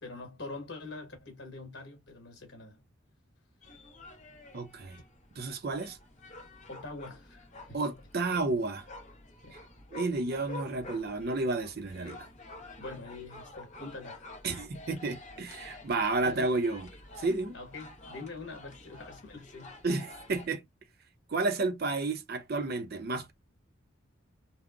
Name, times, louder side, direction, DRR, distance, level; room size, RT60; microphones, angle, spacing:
voice 1, 0.0-2.8 6.7-8.0 9.4-9.6 12.8-14.3 16.2-16.5 17.5-19.7, left 3 dB, 60° left, 1.3 m, -44 dB
sound 1, 3.6-20.5, left 2 dB, 35° left, 0.8 m, -49 dB
voice 2, 4.5-5.0 5.4-6.0 7.7-8.9 9.5-9.6 9.9-12.3 14.4-16.9 17.2-17.6 19.8-20.6 21.3-23.3, right 3 dB, 50° right, 0.5 m, -31 dB
3.6 x 2.0 x 2.3 m
head